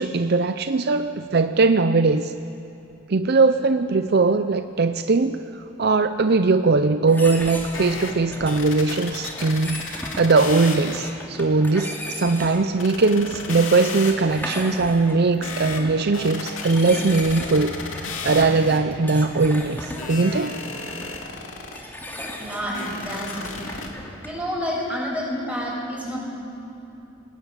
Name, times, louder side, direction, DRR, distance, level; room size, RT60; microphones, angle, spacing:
voice 1, 0.0-2.3 3.1-5.4 5.8-17.8 18.0-20.6, right 3 dB, 55° right, 10 dB, 0.6 m, -20 dB
sound 1, 7.1-24.5, left 1 dB, 10° left, 2.6 m, -37 dB
sound 2, 7.7-8.1 8.5-11.1 11.6-11.7 11.9-12.0 12.8-14.1 15.4-15.8 16.1-19.0 20.0-21.8 22.7-23.9, left 4 dB, 90° left, 3.0 m, -33 dB
voice 2, 22.4-23.6 24.2-26.2, equal, 5° right, -4 dB, 7.1 m, -29 dB
22.5 x 20.0 x 9.1 m, 2.8 s
head